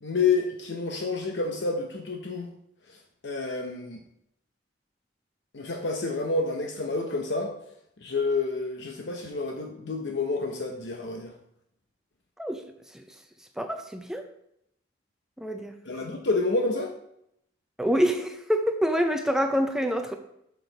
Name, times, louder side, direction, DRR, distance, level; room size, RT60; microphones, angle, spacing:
voice 1, 0.0-2.5 2.9-4.0 5.5-7.5 8.0-11.3 15.9-16.9, left 3 dB, 70° left, 3 dB, 0.8 m, -29 dB
voice 2, 13.6-14.2 15.4-15.8 17.8-20.2, equal, 5° right, 5 dB, 0.5 m, -26 dB
6.9 x 6.0 x 4.0 m, 0.76 s
head